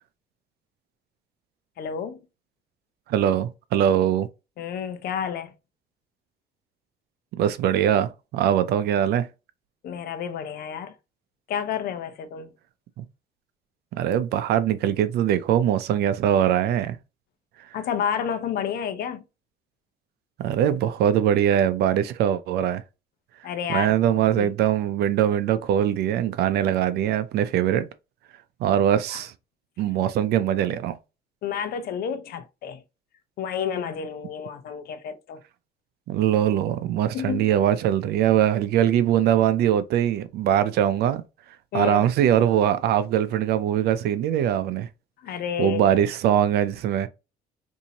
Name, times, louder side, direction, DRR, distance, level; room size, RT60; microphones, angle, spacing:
voice 1, 1.8-2.2 4.6-5.5 9.8-10.9 11.5-12.5 17.7-19.2 23.4-23.9 24.4-24.5 29.1-29.2 31.4-32.8 33.4-35.4 37.1-37.5 41.7-42.1 45.2-46.0, left 8 dB, 65° left, 0.7 m, -30 dB
voice 2, 3.1-4.3 7.4-9.3 13.0-13.1 13.9-17.0 20.4-22.8 23.7-27.9 28.6-29.3 29.8-31.0 36.1-41.2 41.7-44.9 45.6-47.1, right 10 dB, 70° right, 0.5 m, -22 dB
3.9 x 2.7 x 2.8 m
cardioid pair, 110°, 17 cm